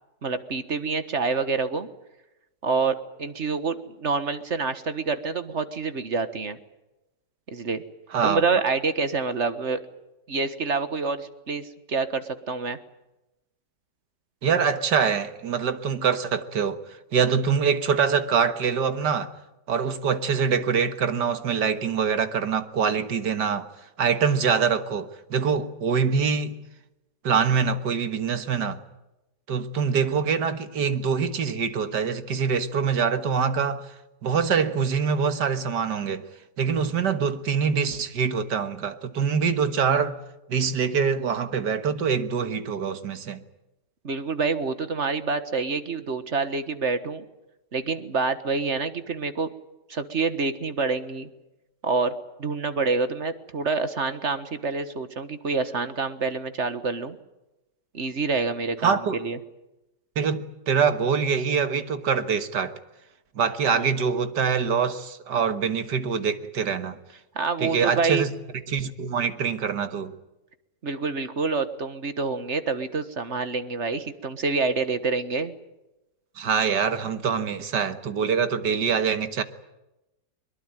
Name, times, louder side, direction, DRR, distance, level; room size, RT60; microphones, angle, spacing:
voice 1, 0.2-1.9 2.6-6.6 7.5-7.8 8.2-9.8 10.3-12.8 44.0-47.2 47.7-49.5 49.9-51.3 51.8-57.2 57.9-59.4 63.7-63.9 67.3-68.2 70.8-75.5, right 4 dB, 45° right, 1.6 m, -27 dB
voice 2, 14.4-16.8 17.1-19.3 19.7-23.7 24.0-26.6 27.2-28.8 29.5-33.9 34.2-36.2 36.6-40.2 40.5-43.4 58.8-59.2 60.2-62.7 63.4-67.0 67.6-68.3 68.7-70.1 76.4-79.4, right 6 dB, 75° right, 2.0 m, -24 dB
22.5 x 22.0 x 9.1 m
omnidirectional pair, 1.9 m